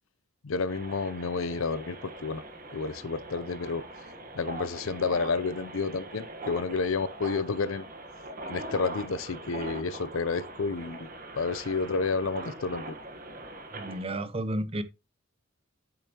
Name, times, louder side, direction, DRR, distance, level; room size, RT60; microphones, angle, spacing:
voice 1, 0.4-2.4 2.7-3.8 4.3-7.9 8.5-11.1 11.4-12.9, left 4 dB, 90° left, 0.6 m, -30 dB
sound 1, 0.7-14.1, right 1 dB, 45° right, 1.3 m, -42 dB
voice 2, 13.7-14.8, right 1 dB, 30° right, 0.7 m, -32 dB
8.3 x 6.7 x 2.9 m
head